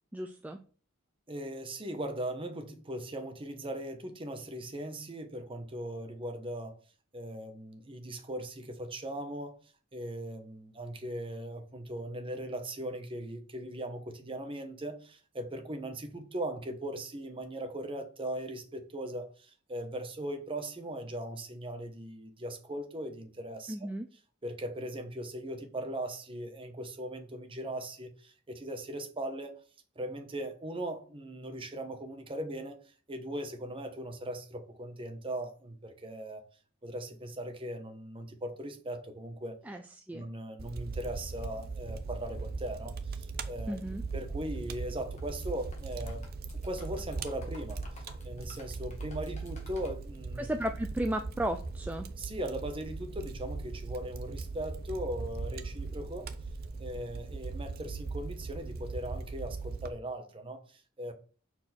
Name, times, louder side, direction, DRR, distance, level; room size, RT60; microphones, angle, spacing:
voice 1, 0.1-0.6 23.7-24.1 39.7-39.8 40.1-40.3 43.7-44.0 50.4-52.1, right 1 dB, 10° right, 0.3 m, -34 dB
voice 2, 1.3-6.8 7.1-9.6 9.9-23.9 24.4-29.5 30.0-32.8 33.1-36.4 36.8-39.6 40.1-43.8 44.1-46.2 46.6-50.5 52.2-56.3 56.8-61.1, right 1 dB, 25° right, 1.0 m, -39 dB
Fire, 40.6-59.9, right 3 dB, 50° right, 0.6 m, -39 dB
sound 1, 45.0-45.5 45.7-49.9, left 3 dB, 35° left, 1.7 m, -53 dB
6.1 x 4.5 x 4.3 m
head